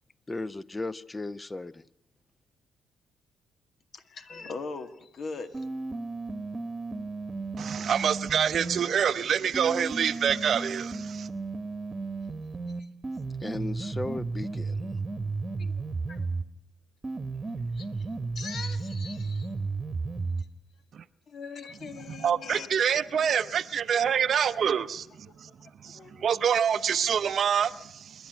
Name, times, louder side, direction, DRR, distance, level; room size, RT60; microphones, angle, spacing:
voice 1, 0.3-1.8 13.4-15.0, left 2 dB, 20° left, 0.8 m, -36 dB
voice 2, 3.9-5.7 12.8-12.9 15.6-15.7 16.1-16.3 17.7-18.1 18.4-19.5 21.3-22.8 23.1-23.3 24.1-24.2 24.8-24.9 25.5-25.6 25.9-26.3, left 4 dB, 55° left, 1.9 m, -41 dB
sound 1, 5.5-8.8 9.5-16.5 17.0-20.5, right 3 dB, 25° right, 1.4 m, -34 dB
voice 3, 7.6-11.3 20.9-21.0 22.1-25.1 25.4-25.5 25.8-28.3, right 8 dB, 55° right, 0.7 m, -26 dB
27.0 x 11.5 x 9.2 m
cardioid pair, 90°, 0 cm